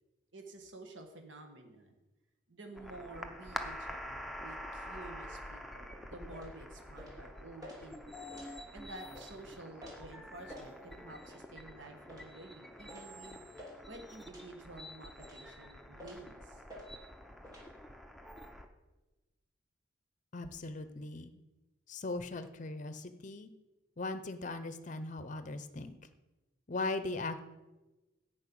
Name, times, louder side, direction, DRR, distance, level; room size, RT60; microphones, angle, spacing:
voice 1, 0.3-1.9 2.5-8.3 8.7-13.4 13.9-16.6, right 2 dB, 75° right, 4 dB, 1.4 m, -51 dB
sound 1, 2.8-18.7, equal, ahead, 0.6 m, -47 dB
sound 2, 6.3-6.5 7.0-7.2 7.6-7.8 8.3-8.5 9.1-9.3 9.8-10.0 10.5-10.7 11.2-11.4 12.1-12.3 12.9-13.1 13.6-13.8 14.3-14.5 15.2-15.4 16.0-16.3 16.7-16.9 17.4-17.7, left 1 dB, 20° right, 2.7 m, -50 dB
voice 2, 20.3-21.3 21.9-23.5 24.0-26.0 26.7-27.4, left 2 dB, 40° left, 10 dB, 0.6 m, -39 dB
11.0 x 5.3 x 8.5 m, 1.1 s
head